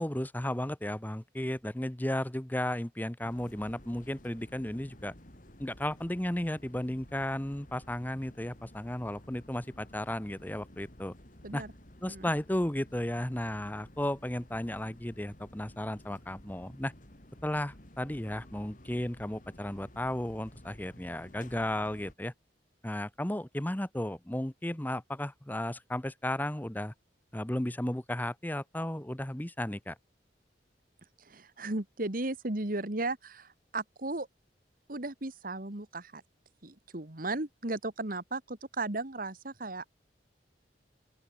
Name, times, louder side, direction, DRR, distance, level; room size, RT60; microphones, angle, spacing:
voice 1, 0.0-5.1 5.6-11.1 11.5-11.6 12.0-16.9 17.4-22.3 22.8-26.9 27.3-30.0, left 1 dB, 10° left, 1.0 m, -34 dB
sound 1, 3.2-22.1, left 1 dB, 50° left, 4.5 m, -53 dB
voice 2, 31.3-34.3 34.9-36.2 36.6-39.8, right 2 dB, 50° right, 2.0 m, -35 dB
open air
head